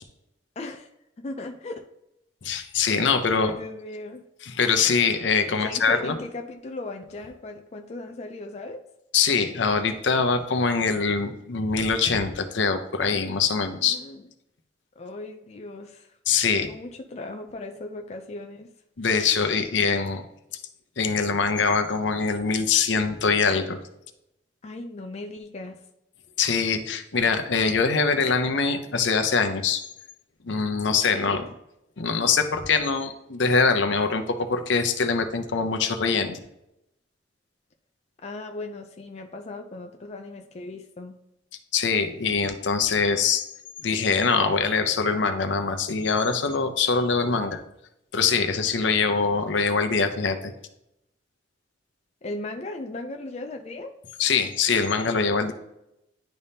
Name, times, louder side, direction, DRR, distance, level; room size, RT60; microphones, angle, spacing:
voice 1, 0.6-0.9 1.2-1.9 3.4-4.3 5.5-8.8 13.8-14.3 15.0-16.2 16.5-18.7 24.6-25.8 31.1-31.3 38.2-41.2 52.2-54.0, left 2 dB, 35° left, 4 dB, 0.4 m, -37 dB
voice 2, 2.4-3.5 4.4-6.2 9.1-14.0 16.3-16.7 19.0-20.2 21.0-23.8 26.4-29.8 30.4-31.5 32.0-36.4 41.7-43.4 43.8-47.6 48.1-50.5 54.2-55.5, left 5 dB, 75° left, 7 dB, 0.7 m, -23 dB
10.5 x 3.5 x 2.7 m, 0.84 s
head